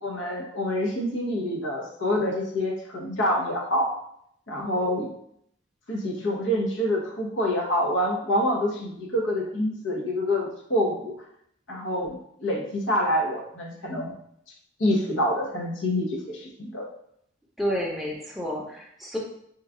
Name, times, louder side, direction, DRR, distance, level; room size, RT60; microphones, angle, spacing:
voice 1, 0.0-3.9 4.5-5.1 5.9-11.1 11.7-12.2 12.4-14.1 14.8-16.9, left 1 dB, 90° left, -2 dB, 0.9 m, -26 dB
voice 2, 17.6-19.2, equal, ahead, -3 dB, 0.6 m, -30 dB
3.1 x 2.3 x 3.7 m, 0.71 s
head